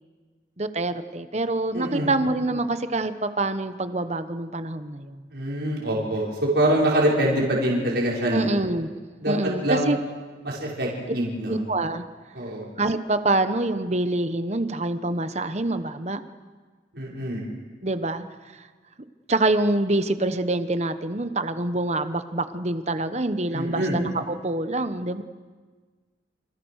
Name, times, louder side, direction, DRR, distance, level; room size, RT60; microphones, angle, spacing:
voice 1, 0.6-5.2 8.3-8.9 9.2-10.0 11.5-12.0 12.8-16.2 17.8-18.2 19.3-25.2, right 2 dB, 35° right, 10 dB, 1.2 m, -26 dB
voice 2, 1.7-2.1 5.3-8.5 9.2-9.9 10.4-11.6 12.3-12.7 16.9-17.4 23.5-24.0, right 1 dB, 65° right, -3 dB, 6.2 m, -24 dB
29.0 x 28.5 x 6.6 m, 1.5 s
head